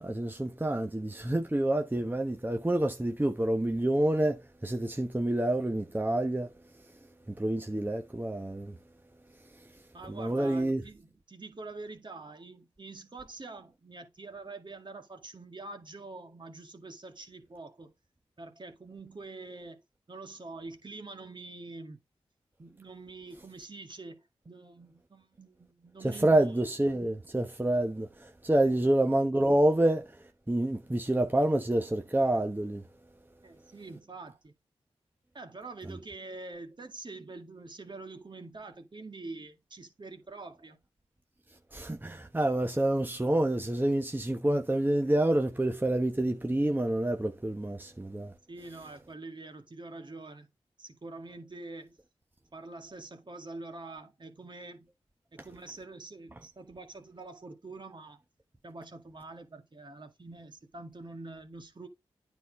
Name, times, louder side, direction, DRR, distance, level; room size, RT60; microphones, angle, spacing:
voice 1, 0.0-6.5 7.3-8.8 10.1-10.8 26.2-30.1 30.5-32.8 41.7-48.3, right 1 dB, 15° right, 1.1 m, -28 dB
voice 2, 9.9-17.9 18.4-19.8 20.1-22.0 22.6-26.6 28.5-28.7 33.4-34.5 35.3-40.8 48.5-50.5 50.8-52.0 52.5-54.9 55.3-58.2 58.6-61.9, right 3 dB, 45° right, 1.9 m, -45 dB
9.3 x 4.2 x 4.7 m
cardioid pair, 40°, 11 cm